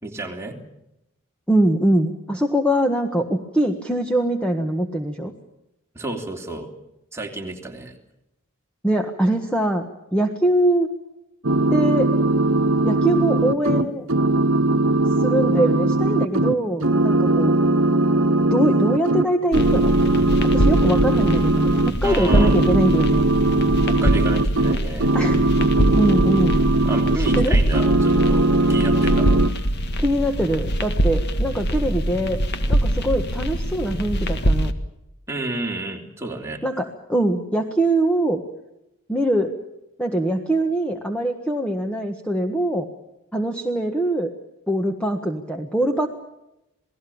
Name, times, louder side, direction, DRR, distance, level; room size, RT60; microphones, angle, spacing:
voice 1, 0.0-0.6 5.9-6.7 7.1-7.9 22.0-22.6 23.9-25.1 26.8-29.3 35.3-36.6, right 2 dB, 10° right, 1 dB, 3.2 m, -30 dB
voice 2, 1.5-5.3 8.8-9.8 10.1-10.9 11.7-12.1 12.8-14.1 15.2-17.5 18.5-20.0 20.4-23.3 25.1-25.4 25.9-26.6 27.1-27.6 30.0-32.4 32.7-34.7 36.6-38.4 39.1-39.5 40.0-42.9 43.3-44.3 44.7-46.1, right 1 dB, 5° left, 4 dB, 1.5 m, -22 dB
sound 1, 11.4-16.5 16.8-19.3 19.5-21.9 22.3-27.5 27.7-29.5, right 2 dB, 65° right, 1.3 m, -19 dB
sound 2, 19.5-34.7, equal, 50° left, 1.8 m, -23 dB
28.5 x 19.5 x 7.2 m, 0.89 s
head